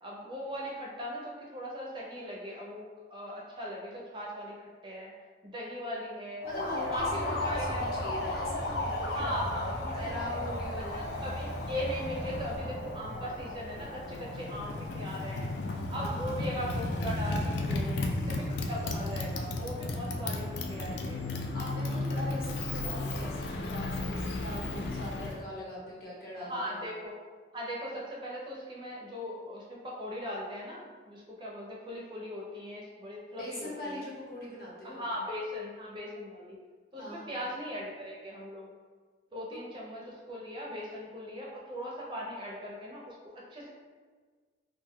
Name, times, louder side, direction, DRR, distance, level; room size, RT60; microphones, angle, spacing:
voice 1, 0.0-4.5 4.8-5.1 5.4-6.4 6.9-7.8 9.0-10.4 10.8-15.5 15.9-21.2 26.4-27.1 27.5-34.1 34.8-36.6 36.9-38.7 39.3-43.7, equal, 25° right, -3 dB, 0.4 m, -39 dB
Motorcycle, 6.4-25.4, left 2 dB, 70° left, 0.3 m, -34 dB
voice 2, 6.4-9.4 9.7-11.0 15.9-16.4 21.5-26.8 33.3-35.0 37.0-37.3 39.5-39.6, equal, 55° left, -5 dB, 0.8 m, -41 dB
sound 1, 6.9-12.6, right 1 dB, 20° left, 0.5 m, -40 dB
2.5 x 2.1 x 3.5 m, 1.5 s
head